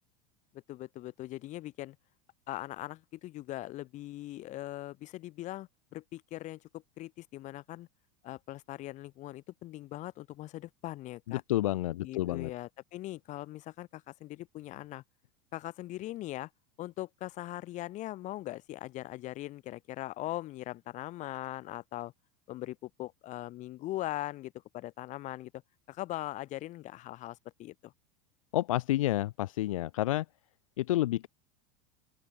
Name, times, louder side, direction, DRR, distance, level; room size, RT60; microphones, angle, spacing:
voice 1, 0.5-2.0 2.5-7.9 8.2-11.4 12.0-15.0 15.5-16.5 16.8-22.1 22.5-25.6 25.9-27.9, left 16 dB, 45° left, 5.1 m, -40 dB
voice 2, 11.3-12.5 28.5-30.3 30.8-31.3, left 15 dB, 80° left, 0.8 m, -29 dB
open air
hypercardioid pair, 105°, 17 cm